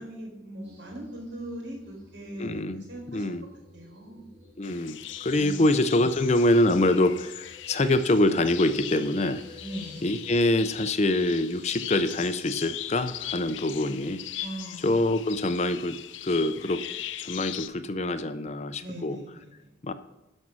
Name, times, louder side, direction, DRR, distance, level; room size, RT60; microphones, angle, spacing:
voice 1, 0.0-3.3 3.7-4.2 5.4-5.7 9.6-10.0 14.4-15.0 18.8-19.7, right 1 dB, 75° right, 0 dB, 4.4 m, -40 dB
sound 1, 0.6-17.8, left 2 dB, 35° right, 4.6 m, -53 dB
voice 2, 2.4-2.8 3.1-3.5 4.6-9.4 10.0-14.2 14.8-16.0 16.2-16.8 17.2-19.2 19.8-19.9, left 1 dB, 35° left, 11 dB, 0.5 m, -25 dB
birds processed, 4.6-17.7, left 12 dB, 80° left, 0.5 m, -40 dB
12.0 x 5.4 x 6.1 m, 0.94 s
head